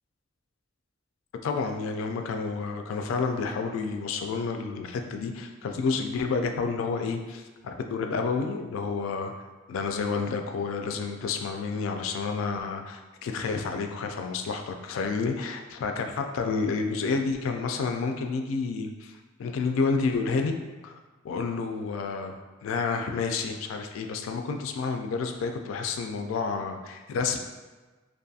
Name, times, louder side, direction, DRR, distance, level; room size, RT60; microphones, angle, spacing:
voice 1, 1.4-9.3 9.7-20.6 20.8-20.9 21.2-22.3 22.6-27.4, left 4 dB, 75° left, 5 dB, 0.3 m, -30 dB
2.5 x 2.3 x 2.6 m, 1.3 s
head